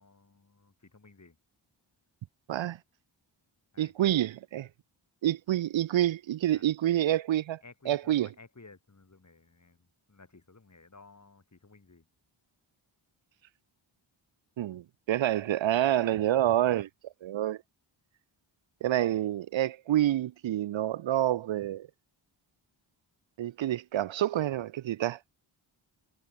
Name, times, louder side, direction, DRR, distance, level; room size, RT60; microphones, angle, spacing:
voice 1, 0.0-1.4 3.7-4.1 6.5-6.6 7.6-12.1, left 3 dB, 35° left, 4.0 m, -56 dB
voice 2, 3.8-4.7 5.2-7.6 7.9-8.3 14.6-16.9 17.2-17.6 18.8-21.9 23.4-25.2, right 12 dB, 70° right, 0.6 m, -28 dB
cardioid pair, 65°, 49 cm